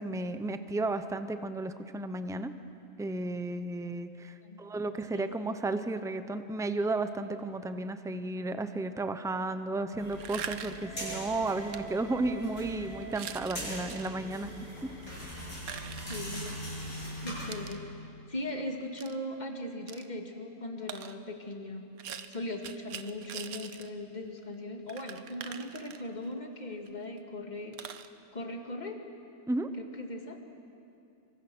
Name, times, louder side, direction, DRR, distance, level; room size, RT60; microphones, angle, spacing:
voice 1, 0.0-2.5 3.0-14.5 14.8-14.9 29.5-29.7, right 2 dB, 5° right, 9 dB, 0.5 m, -33 dB
sound 1, 10.0-17.7, right 1 dB, 75° left, 8.2 m, -41 dB
sound 2, 10.1-10.9 11.7-11.8 12.3-12.6 13.0-14.1 15.0-16.6 17.5-17.8 19.0-19.1 19.9-20.1 20.9-21.2 22.0-23.9 24.2-24.3 24.5-24.6 24.9-26.3 26.9-27.0 27.2-27.3 27.7-28.1, right 8 dB, 80° right, 1.3 m, -43 dB
voice 2, 16.1-16.6 17.2-21.9 22.3-27.8 28.3-29.0 29.7-30.4, left 1 dB, 30° left, 3 dB, 2.1 m, -39 dB
27.0 x 24.0 x 6.2 m, 2.6 s
omnidirectional pair, 1.5 m